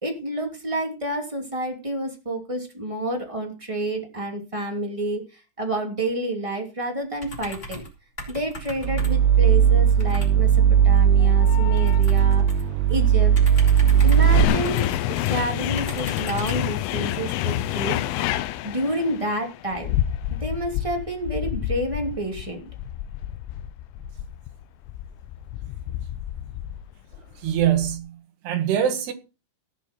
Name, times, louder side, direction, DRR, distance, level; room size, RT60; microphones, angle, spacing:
voice 1, 0.0-7.8 8.3-10.5 10.8-12.4 12.9-13.3 14.0-14.9 15.3-18.0 18.6-19.9 20.4-22.7, right 1 dB, 20° right, 0.8 m, -29 dB
sound 1, 7.2-7.9 8.2-9.3 10.0-10.3 11.7-12.7 13.3-15.3 15.8-16.7, equal, 15° left, 3.5 m, -38 dB
sound 2, 8.8-14.4, right 8 dB, 80° right, 2.7 m, -17 dB
sound 3, 11.2-12.0 12.9-28.0, left 14 dB, 90° left, 3.4 m, -29 dB
voice 2, 27.4-28.2 28.4-29.1, right 10 dB, 65° right, 3.6 m, -23 dB
18.5 x 7.1 x 4.5 m
omnidirectional pair, 5.6 m